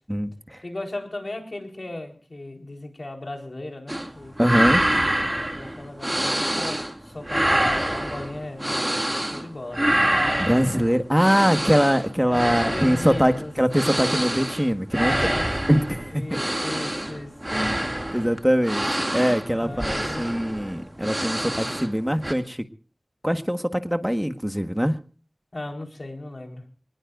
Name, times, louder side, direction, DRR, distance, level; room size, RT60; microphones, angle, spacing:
voice 1, 0.1-0.6 4.4-4.8 10.4-15.3 15.7-16.2 17.5-17.8 18.1-19.9 20.2-22.6 23.2-24.9, equal, 5° right, 7 dB, 1.6 m, -22 dB
voice 2, 0.6-4.6 5.6-8.9 9.2-9.9 12.3-13.5 15.0-15.5 16.1-17.3 19.6-20.3 25.5-26.6, left 2 dB, 65° left, 2 dB, 4.3 m, -36 dB
sound 1, 3.9-4.1 4.4-7.0 7.2-9.5 9.7-21.9 22.2-22.3, right 1 dB, 25° right, 2.5 m, -26 dB
24.5 x 20.0 x 2.6 m, 0.38 s
wide cardioid pair, 40°, 0 cm